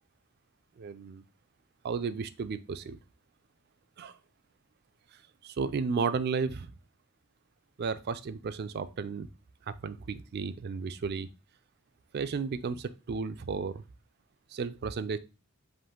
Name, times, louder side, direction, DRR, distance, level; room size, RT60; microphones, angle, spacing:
voice 1, 0.8-1.2 1.8-3.0 4.0-4.1 5.4-6.7 7.8-9.3 9.7-11.3 12.1-13.8 14.5-15.2, right 5 dB, 45° right, 13 dB, 0.4 m, -33 dB
5.2 x 2.5 x 3.6 m, 0.31 s
head